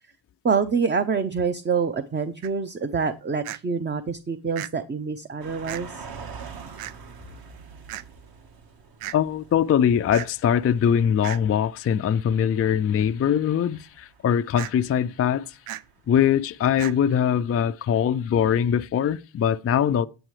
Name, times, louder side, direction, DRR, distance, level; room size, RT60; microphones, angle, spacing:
voice 1, 0.4-6.1, right 5 dB, 20° right, 0.6 m, -26 dB
sound 1, 2.4-2.5 3.4-3.6 4.6-4.7 5.7-5.8 6.8-6.9 7.9-8.0 9.0-9.2 10.1-10.3 11.2-11.4 14.6-14.7 15.7-15.8 16.8-16.9, right 13 dB, 85° right, 0.6 m, -34 dB
sound 2, 5.4-17.1 17.4-17.5, right 5 dB, 45° right, 1.4 m, -46 dB
voice 2, 9.1-15.6 16.1-20.1, left 8 dB, 30° left, 0.4 m, -22 dB
9.1 x 8.9 x 3.2 m
cardioid pair, 85°, 50 cm